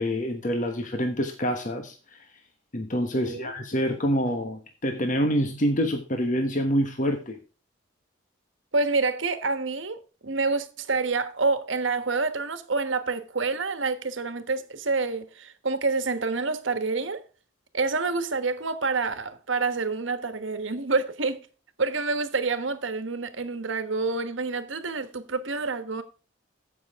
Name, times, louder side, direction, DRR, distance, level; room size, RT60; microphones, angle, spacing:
voice 1, 0.0-2.2 2.7-7.4, equal, 40° left, 1.2 m, -26 dB
voice 2, 3.2-3.5 8.7-17.2 17.7-21.4 21.8-26.0, right 3 dB, 75° right, 1.3 m, -27 dB
15.0 x 6.1 x 3.6 m
head